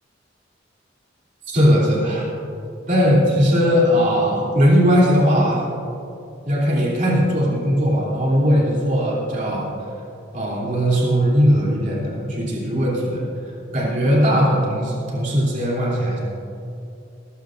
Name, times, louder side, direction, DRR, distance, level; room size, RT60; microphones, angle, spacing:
voice 1, 1.5-2.3 2.9-5.6 6.4-9.7 10.3-16.2, equal, 45° right, -4 dB, 3.2 m, -19 dB
19.5 x 15.5 x 2.6 m, 2.7 s
head